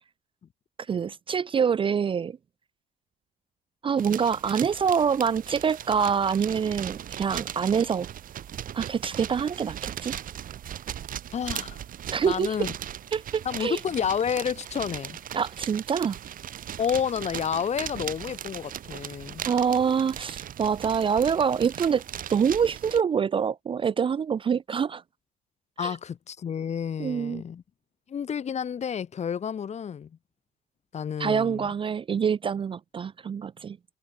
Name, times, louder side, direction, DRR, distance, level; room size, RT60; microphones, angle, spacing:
voice 1, 0.9-2.4 3.8-8.1 8.7-10.2 12.1-12.6 13.1-13.8 15.3-16.2 19.4-22.0 22.3-25.0 25.8-25.9 27.0-27.4 31.2-33.8, right 7 dB, 30° right, 0.5 m, -25 dB
sound 1, 4.0-23.0, right 10 dB, 55° right, 3.8 m, -38 dB
voice 2, 11.3-11.8 12.2-12.8 13.4-15.2 16.8-19.5 25.8-27.6 28.1-30.2 30.9-31.7, left 7 dB, 40° left, 2.3 m, -30 dB
cardioid pair, 110°, 17 cm